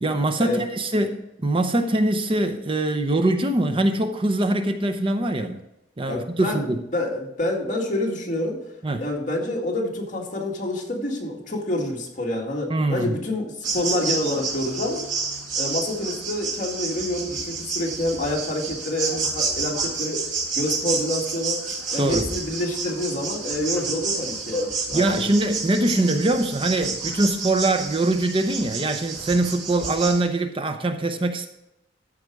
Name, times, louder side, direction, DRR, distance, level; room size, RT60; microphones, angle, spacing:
voice 1, 0.0-5.6 6.0-6.8 8.8-9.0 12.7-13.2 22.0-22.3 24.9-31.5, right 2 dB, 30° right, 7 dB, 0.7 m, -23 dB
voice 2, 6.1-8.6 9.0-15.0 15.6-20.2 20.5-21.6 21.9-25.3, left 1 dB, 45° left, -2 dB, 2.2 m, -27 dB
sound 1, 13.6-30.2, right 4 dB, 90° right, 2.3 m, -30 dB
13.5 x 5.0 x 4.7 m, 0.87 s
head